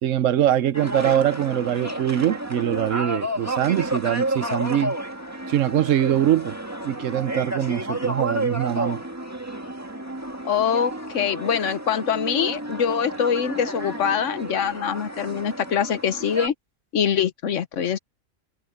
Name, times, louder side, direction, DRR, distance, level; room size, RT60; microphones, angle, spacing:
voice 1, 0.0-4.9 5.5-6.5 6.8-9.0, right 11 dB, 75° right, 1.1 m, -23 dB
sound 1, 0.7-16.5, right 1 dB, 10° right, 2.1 m, -31 dB
voice 2, 10.4-16.5 16.9-18.0, left 8 dB, 70° left, 1.3 m, -24 dB
omnidirectional pair, 1.3 m